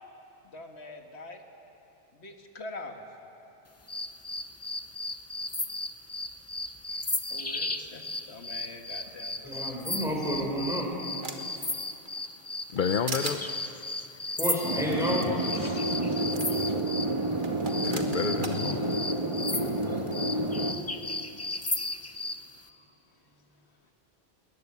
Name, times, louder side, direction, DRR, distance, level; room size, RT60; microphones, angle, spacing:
voice 1, 0.4-1.4 2.1-3.0 7.3-9.6 15.5-17.2 20.7-20.9, left 2 dB, 85° left, 4 dB, 1.9 m, -45 dB
sound 1, 3.9-17.1 17.7-22.4, left 2 dB, 15° left, 0.7 m, -35 dB
voice 2, 9.4-10.9 14.4-15.3, equal, 5° right, -2 dB, 5.4 m, -30 dB
sound 2, 10.2-11.6 12.1-12.8 13.1-13.4 14.9-15.0 15.2-15.3 16.3-16.5 17.4-18.6, right 3 dB, 50° right, 1.7 m, -38 dB
voice 3, 12.7-13.4 17.8-18.8, left 7 dB, 55° left, 9 dB, 0.8 m, -29 dB
sound 3, 14.6-20.8, right 1 dB, 30° right, 1.4 m, -29 dB
21.0 x 20.0 x 9.5 m, 2.9 s
omnidirectional pair, 1.1 m